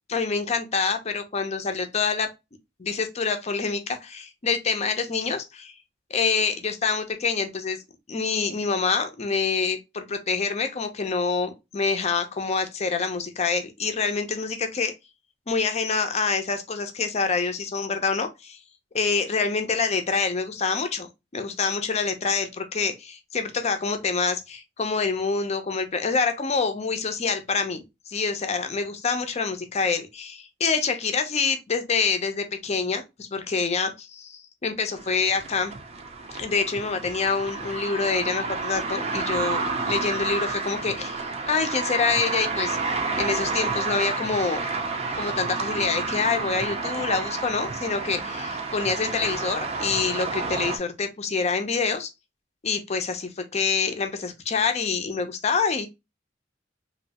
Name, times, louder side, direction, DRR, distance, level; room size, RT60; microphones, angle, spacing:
voice 1, 0.1-2.3 2.8-5.7 6.1-7.8 8.1-14.9 15.5-18.6 18.9-35.7 36.4-44.6 45.2-52.1 52.6-55.9, left 5 dB, 35° left, 0.5 m, -26 dB
sound 1, 35.0-50.8, right 4 dB, 35° right, 0.5 m, -30 dB
3.1 x 2.7 x 2.8 m
head